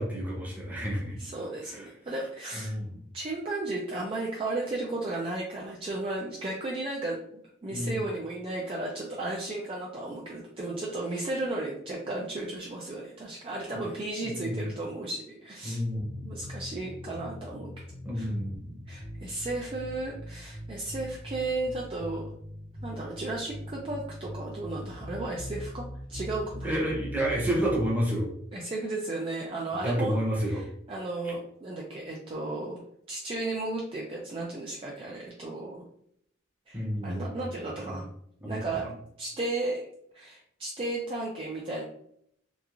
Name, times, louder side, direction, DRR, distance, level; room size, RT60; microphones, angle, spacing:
voice 1, 0.0-1.2 1.7-1.9 2.5-2.9 7.7-8.0 13.7-13.8 14.2-14.7 15.6-16.2 18.0-18.8 26.6-28.3 29.8-30.6 36.7-37.5 37.8-38.0 38.4-38.6, equal, 10° right, -4 dB, 0.8 m, -30 dB
voice 2, 0.8-2.7 3.1-7.2 7.6-15.8 16.2-17.7 18.1-18.3 18.9-22.3 22.8-25.8 26.1-26.8 28.5-30.1 30.4-32.8 33.1-35.8 36.7-38.1 38.4-38.9 39.2-39.9 40.1-41.8, right 2 dB, 25° right, -3 dB, 0.3 m, -34 dB
sound 1, 16.0-27.9, equal, 55° right, 1.0 m, -41 dB
2.9 x 2.4 x 2.3 m, 0.70 s
head